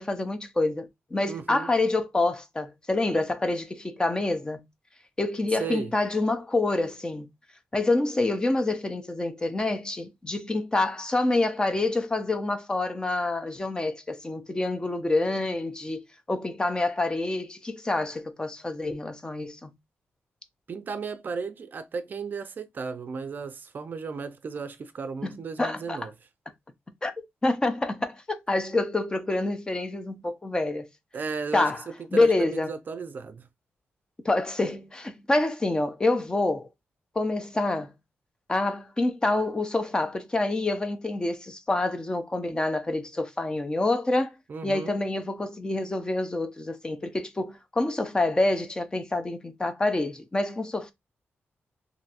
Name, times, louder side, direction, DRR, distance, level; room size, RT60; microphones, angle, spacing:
voice 1, 0.0-4.6 5.2-7.3 7.7-16.0 16.3-19.7 25.2-26.0 27.0-30.9 31.5-31.8 32.1-32.7 34.2-36.7 37.2-37.9 38.5-44.3 44.6-50.9, left 2 dB, 20° left, 0.5 m, -27 dB
voice 2, 1.3-1.7 5.6-5.9 20.7-26.1 31.1-33.5 44.5-45.0, right 5 dB, 45° right, 0.4 m, -35 dB
3.0 x 2.5 x 2.8 m
wide cardioid pair, 125°, 4 cm